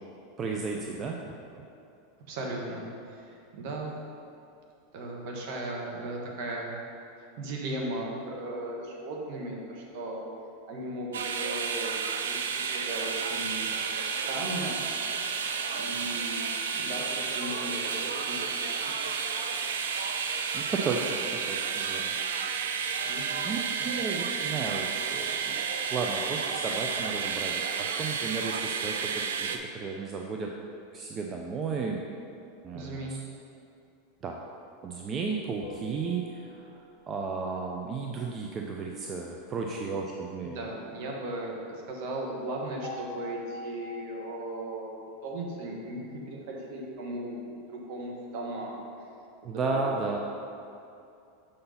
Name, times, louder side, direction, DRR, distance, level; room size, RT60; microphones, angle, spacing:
voice 1, 0.4-1.2 15.9-16.2 20.5-22.1 23.4-25.6 25.9-30.5 30.9-32.0 32.6-33.2 34.2-34.4 34.8-40.6 49.4-50.2, right 4 dB, 35° right, 0 dB, 0.5 m, -34 dB
voice 2, 2.3-4.0 4.9-6.7 7.4-10.2 10.7-13.7 14.2-14.8 15.7-16.4 16.7-19.1 23.1-23.5 32.7-33.2 40.4-44.9 45.2-48.8 49.7-50.2, right 1 dB, 60° right, -1 dB, 1.4 m, -37 dB
sound 1, 11.1-29.6, right 6 dB, 85° right, 0.5 m, -31 dB
sound 2, 35.6-37.2 42.8-46.2, left 3 dB, 55° left, 0.9 m, -45 dB
6.6 x 4.0 x 5.6 m, 2.6 s
hypercardioid pair, 105°, 0 cm